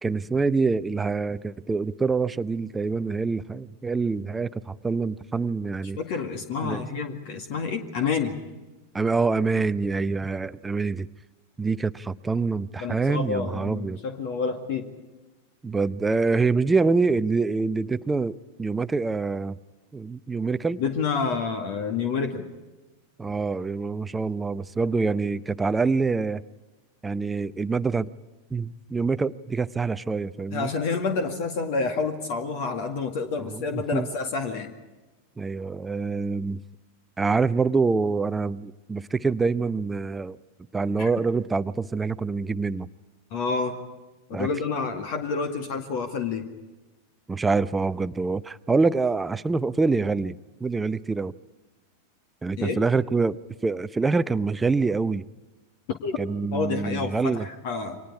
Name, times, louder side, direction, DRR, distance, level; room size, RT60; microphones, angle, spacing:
voice 1, 0.0-6.0 6.6-6.8 8.9-11.1 11.6-14.0 15.6-19.6 19.9-20.8 23.2-26.4 27.0-28.1 28.5-30.7 33.4-34.1 35.4-36.6 37.2-40.4 40.7-42.9 44.3-44.5 47.3-51.3 52.4-53.4 53.6-55.2 56.2-57.5, right 4 dB, 10° right, 15 dB, 0.7 m, -25 dB
voice 2, 6.0-8.4 12.8-14.9 20.8-22.5 30.5-34.7 41.0-41.1 43.3-43.8 44.3-46.5 52.6-52.8 55.9-56.2 56.5-58.0, left 5 dB, 50° left, 6 dB, 2.0 m, -28 dB
29.5 x 24.5 x 4.8 m, 1.1 s
figure-of-eight pair, 90°, 0 cm